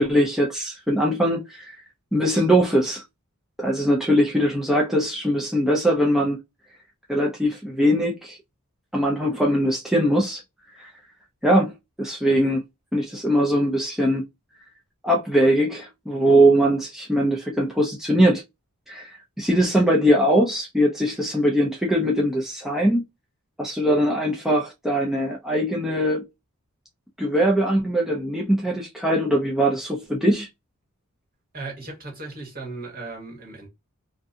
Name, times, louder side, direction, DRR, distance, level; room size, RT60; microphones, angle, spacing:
voice 1, 0.0-1.8 2.1-3.0 3.6-6.4 7.1-8.4 8.9-10.4 10.8-10.9 11.4-11.7 12.0-12.6 12.9-14.2 15.0-18.4 18.9-19.1 19.4-23.0 23.6-26.3 27.2-30.5, equal, ahead, 0.4 m, -21 dB
voice 2, 31.5-33.7, right 3 dB, 40° right, 1.5 m, -36 dB
2.6 x 2.5 x 2.2 m
head